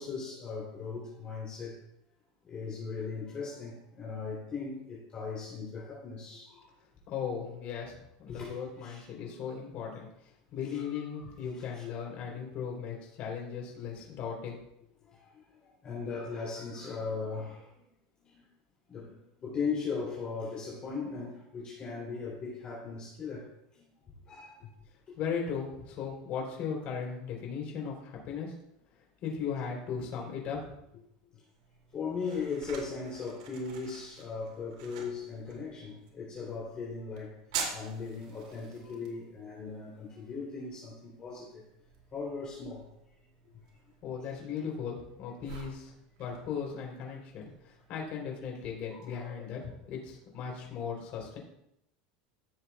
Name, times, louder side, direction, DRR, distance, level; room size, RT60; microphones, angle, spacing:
voice 1, 0.0-1.8 2.4-6.7 8.3-9.1 10.7-11.3 11.7-11.8 15.0-17.7 18.2-18.4 18.9-23.8 24.3-24.7 25.1-25.2 31.9-37.4 37.7-41.6 42.1-42.9 48.9-49.3, left 4 dB, 30° left, -5 dB, 3.1 m, -38 dB
voice 2, 7.1-14.6 24.6-24.7 25.2-28.5 29.2-30.6 30.9-31.0 44.0-45.9 46.2-51.4, left 6 dB, 45° left, -1 dB, 3.3 m, -37 dB
sound 1, 31.5-49.1, right 6 dB, 80° right, 2.5 m, -47 dB
15.0 x 7.2 x 2.3 m, 0.80 s
supercardioid pair, 145°, 3 cm